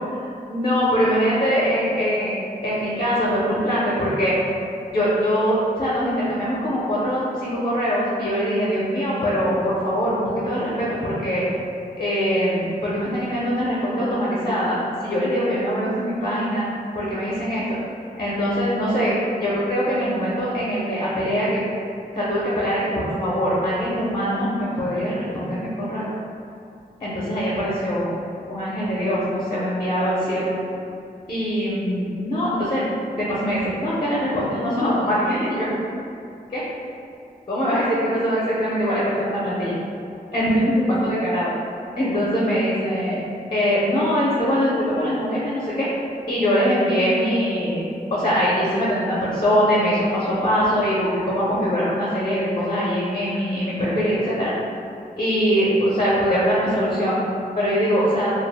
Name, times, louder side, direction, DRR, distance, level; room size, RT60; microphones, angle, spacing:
voice 1, 0.5-2.4 2.6-4.3 4.9-11.5 12.0-16.7 16.9-17.8 18.2-21.6 22.2-26.1 27.0-28.1 28.5-30.5 31.3-32.8 33.1-35.7 36.5-36.6 37.5-39.7 40.3-41.5 42.0-43.2 43.5-45.9 46.3-54.5 55.2-57.2 57.6-58.3, equal, 35° left, -8 dB, 0.5 m, -22 dB
2.3 x 2.0 x 3.2 m, 2.5 s
wide cardioid pair, 110°, 16 cm